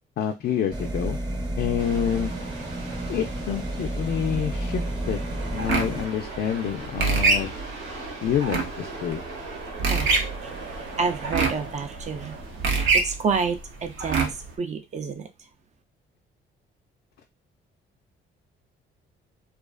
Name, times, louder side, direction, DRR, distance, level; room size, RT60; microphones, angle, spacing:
voice 1, 0.2-1.2 1.6-2.3 3.1-5.2 5.5-7.5 8.2-9.2, left 9 dB, 55° left, 4 dB, 0.4 m, -27 dB
sound 1, 0.7-6.0, right 1 dB, 20° right, 0.9 m, -31 dB
sound 2, 1.8-12.9, right 2 dB, 90° right, 1.1 m, -39 dB
sound 3, 5.6-14.5, right 4 dB, 75° right, 0.7 m, -26 dB
voice 2, 11.0-12.4 12.8-15.3, right 5 dB, 35° right, 8 dB, 0.5 m, -29 dB
2.4 x 2.4 x 2.3 m, 0.23 s
cardioid pair, 90°, 20 cm